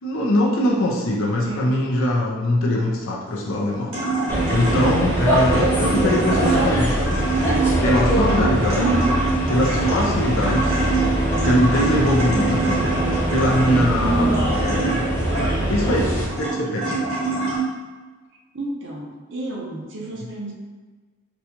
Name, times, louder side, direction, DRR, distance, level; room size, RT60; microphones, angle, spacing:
voice 1, 0.0-3.9 4.5-7.2 7.8-8.9 9.5-10.7 11.4-12.8 13.3-15.0 15.7-17.0 20.2-20.3, left 1 dB, 70° left, -3 dB, 0.6 m, -22 dB
voice 2, 1.4-1.8 8.8-9.1 14.0-14.4 18.5-20.5, right 2 dB, 55° right, -2 dB, 0.7 m, -27 dB
sound 1, 3.3-17.6, right 3 dB, 75° right, 1.1 m, -25 dB
sound 2, 4.3-16.3, right 1 dB, 10° left, 0.6 m, -22 dB
4.0 x 2.3 x 2.8 m, 1.4 s
head